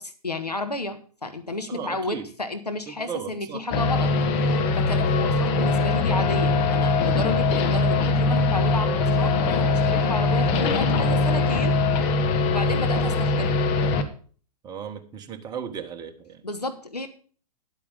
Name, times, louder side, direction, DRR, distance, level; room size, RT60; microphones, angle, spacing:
voice 1, 0.0-4.1 4.4-11.8 12.5-13.7 16.4-17.1, left 2 dB, 85° left, 8 dB, 1.4 m, -32 dB
voice 2, 1.7-2.3 2.9-3.6 14.6-16.4, right 7 dB, 20° right, 6 dB, 1.3 m, -36 dB
sound 1, 3.7-14.0, left 3 dB, 30° left, 1.3 m, -22 dB
11.0 x 8.4 x 5.2 m, 0.42 s
figure-of-eight pair, 110°, 20 cm